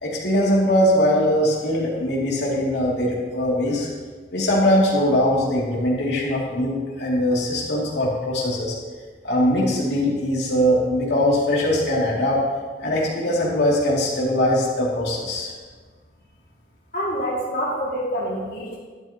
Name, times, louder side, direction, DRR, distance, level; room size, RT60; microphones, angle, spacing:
voice 1, 0.0-3.9 4.3-8.7 9.2-12.4 12.8-15.5, left 1 dB, 80° left, -5 dB, 2.6 m, -21 dB
voice 2, 16.9-18.8, equal, 50° left, -6 dB, 2.3 m, -26 dB
12.5 x 11.0 x 2.9 m, 1.5 s
head